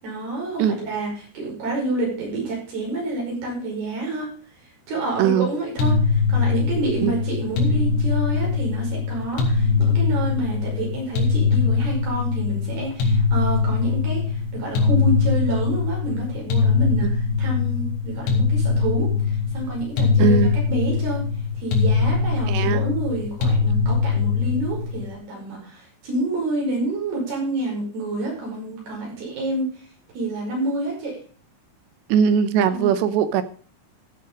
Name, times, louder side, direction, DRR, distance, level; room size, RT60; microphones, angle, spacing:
voice 1, 0.0-4.3 4.9-19.1 19.5-20.4 20.7-21.3 21.6-29.7 30.1-31.2 32.7-32.9, right 2 dB, 60° right, -2 dB, 7.3 m, -28 dB
voice 2, 5.2-5.5 7.0-7.1 20.2-20.5 22.5-22.8 32.1-33.4, right 8 dB, 80° right, 12 dB, 2.9 m, -20 dB
sound 1, 5.8-25.1, left 5 dB, 85° left, 4.6 m, -21 dB
14.5 x 6.7 x 5.2 m, 0.42 s
omnidirectional pair, 5.2 m